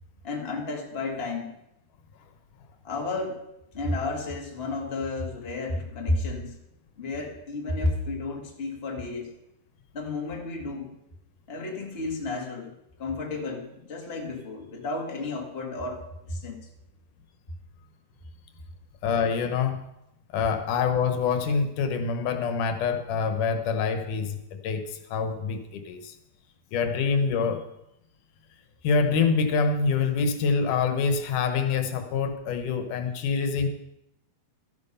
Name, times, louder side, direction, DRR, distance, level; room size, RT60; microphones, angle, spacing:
voice 1, 0.2-1.5 2.8-3.4 3.7-6.6 7.0-9.3 9.9-10.9 11.5-12.7 13.0-16.6, left 2 dB, 25° left, 0 dB, 1.8 m, -32 dB
voice 2, 19.0-19.8 20.3-26.2 26.7-27.6 28.8-33.7, left 5 dB, 85° left, 8 dB, 2.7 m, -26 dB
13.0 x 11.0 x 5.5 m, 0.86 s
omnidirectional pair, 3.5 m